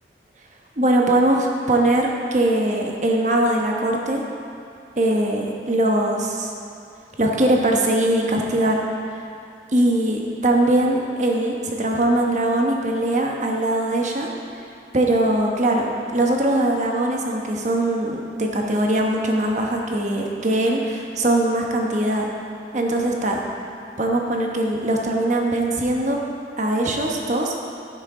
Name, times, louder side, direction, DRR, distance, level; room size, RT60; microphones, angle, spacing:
voice 1, 0.8-4.2 5.0-6.5 7.2-8.8 9.7-14.3 14.9-22.3 22.7-23.4 24.0-26.2 26.6-27.5, right 1 dB, 40° right, 0 dB, 1.1 m, -21 dB
15.0 x 6.3 x 3.8 m, 2.5 s
head